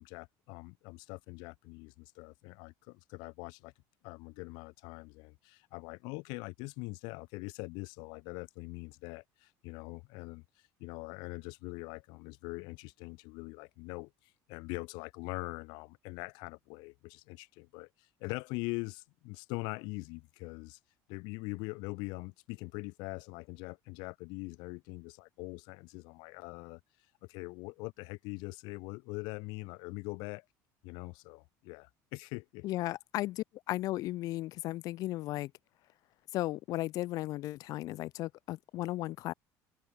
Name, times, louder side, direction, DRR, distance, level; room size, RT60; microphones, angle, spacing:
voice 1, 0.0-3.7 4.0-20.8 21.1-26.8 27.2-30.4 30.8-32.7, left 28 dB, 75° left, 1.1 m, -43 dB
voice 2, 32.6-35.5 36.3-39.3, left 16 dB, 55° left, 1.3 m, -35 dB
cardioid pair, 155°, 7 cm